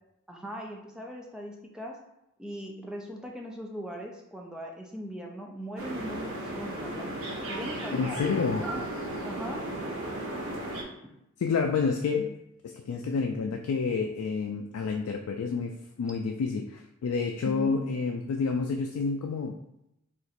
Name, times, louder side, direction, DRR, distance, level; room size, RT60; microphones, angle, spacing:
voice 1, 0.3-2.0 2.4-7.2 7.5-8.9 9.2-9.7 11.0-11.1 17.4-17.9, equal, 5° right, 0 dB, 0.4 m, -39 dB
sound 1, 5.8-10.8, right 1 dB, 70° right, 0.6 m, -35 dB
voice 2, 7.9-8.6 11.4-12.3 12.6-19.6, left 5 dB, 80° left, 3 dB, 0.3 m, -29 dB
2.9 x 2.5 x 4.2 m, 0.85 s
head